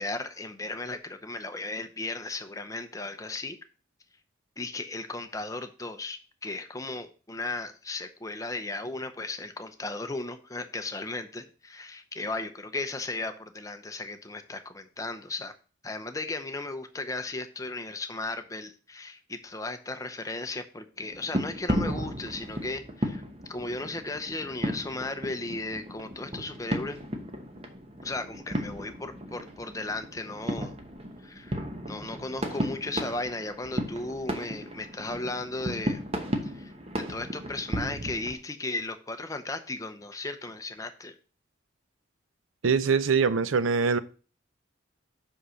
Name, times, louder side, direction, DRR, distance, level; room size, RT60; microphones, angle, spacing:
voice 1, 0.0-3.6 4.6-15.5 15.8-23.2 23.5-27.0 28.0-30.7 31.2-36.0 36.4-41.1, left 2 dB, 15° left, 8 dB, 0.7 m, -36 dB
sound 1, 21.0-38.3, equal, 30° right, 0.9 m, -35 dB
voice 2, 42.6-44.0, right 5 dB, 90° right, 15 dB, 0.6 m, -23 dB
5.6 x 5.4 x 6.4 m, 0.37 s
head